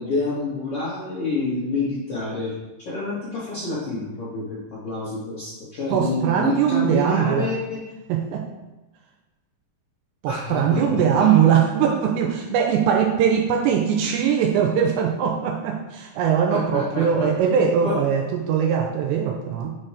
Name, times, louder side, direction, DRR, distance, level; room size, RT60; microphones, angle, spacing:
voice 1, 0.0-2.5 2.8-4.6 4.8-7.8 10.3-11.4 16.5-17.1 17.4-17.6 17.8-18.0, left 3 dB, 75° left, -8 dB, 1.3 m, -28 dB
voice 2, 5.9-7.5 8.1-8.5 10.2-19.7, right 8 dB, 80° right, 3 dB, 2.6 m, -21 dB
7.3 x 4.3 x 4.9 m, 1.1 s
omnidirectional pair, 5.3 m